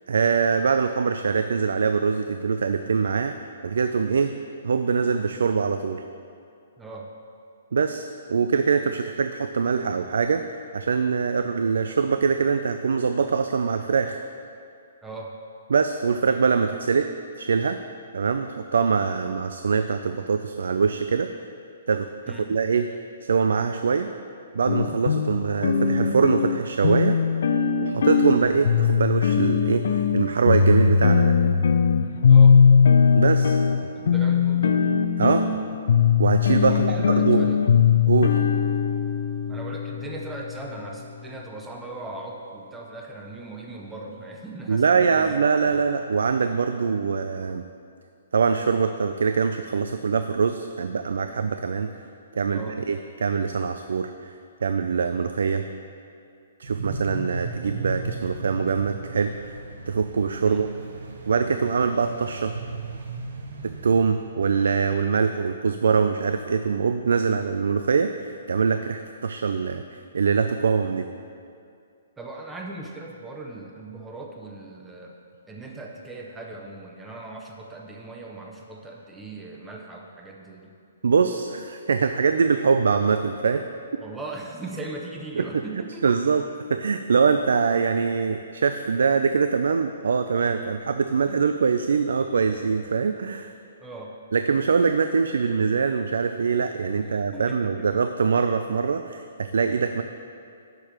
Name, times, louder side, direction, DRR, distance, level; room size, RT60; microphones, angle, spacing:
voice 1, 0.1-3.3 3.6-4.3 4.6-6.0 7.7-14.2 15.7-17.1 17.4-17.8 18.1-21.3 21.9-22.1 22.5-22.9 23.2-24.1 24.5-27.2 27.8-31.4 33.1-33.6 35.2-35.5 36.2-37.5 38.1-38.4 44.7-47.6 48.3-51.9 52.4-54.3 54.6-55.6 56.6-59.6 59.9-60.7 61.3-62.6 63.6-71.1 81.0-83.6 83.9-84.0 85.4-85.6 86.0-86.5 86.7-93.5 94.3-100.0, right 5 dB, 80° right, 8 dB, 0.3 m, -23 dB
voice 2, 6.8-7.1 15.0-15.4 22.3-22.6 32.3-32.6 33.9-34.8 36.6-37.6 39.5-45.4 45.7-45.8 52.5-52.8 60.4-60.7 72.2-75.2 75.5-80.8 84.0-86.0 93.8-94.2 97.0-97.9, right 2 dB, 5° right, 0 dB, 0.5 m, -39 dB
sound 1, 24.7-40.9, left 6 dB, 60° left, 0.5 m, -20 dB
sound 2, 56.6-64.5, right 3 dB, 65° right, 0.9 m, -36 dB
8.3 x 6.7 x 4.5 m, 2.4 s
hypercardioid pair, 175°, 0 cm